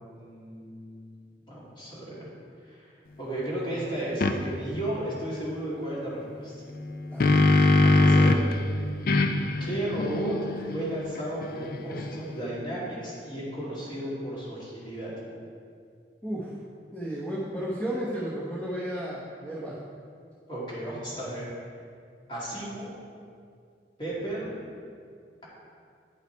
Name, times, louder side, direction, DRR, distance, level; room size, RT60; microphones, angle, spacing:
voice 1, 0.0-1.2 1.5-2.3 2.6-2.9 3.2-6.5 7.8-8.5 8.7-8.9 9.6-10.4 10.7-15.1 20.5-21.4 22.3-22.9 24.0-24.5, right 1 dB, 25° left, -7 dB, 2.4 m, -34 dB
sound 1, 4.2-4.4 6.8-8.5 9.1-12.4, left 2 dB, 55° left, 0.5 m, -23 dB
voice 2, 7.1-7.5 16.2-16.5 16.9-19.8, equal, 10° left, -8 dB, 1.0 m, -33 dB
10.0 x 5.7 x 4.6 m, 2.3 s
head